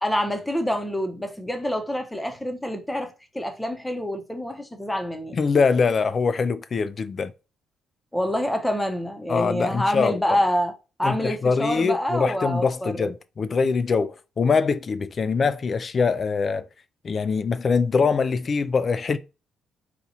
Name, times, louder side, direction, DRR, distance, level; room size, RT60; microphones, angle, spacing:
voice 1, 0.0-5.4 8.1-10.7 11.0-13.1, equal, 10° left, 0.8 m, -26 dB
voice 2, 5.3-7.3 9.3-10.4 11.0-16.7 17.0-19.2, left 5 dB, 45° left, 0.3 m, -23 dB
4.2 x 2.4 x 2.7 m
cardioid pair, 90°, 0 cm